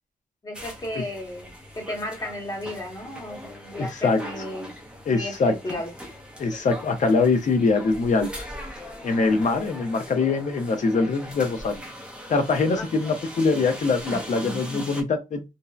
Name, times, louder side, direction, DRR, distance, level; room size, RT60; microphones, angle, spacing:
voice 1, 0.4-4.7 5.1-5.9 12.7-12.9, left 1 dB, 25° left, 0.9 m, -34 dB
sound 1, 0.5-15.0, equal, 5° right, 0.5 m, -40 dB
voice 2, 3.8-4.2 5.1-5.8 6.4-8.4 9.0-11.8 12.3-15.4, left 4 dB, 55° left, 0.6 m, -23 dB
2.6 x 2.0 x 2.3 m
wide cardioid pair, 170°, 15 cm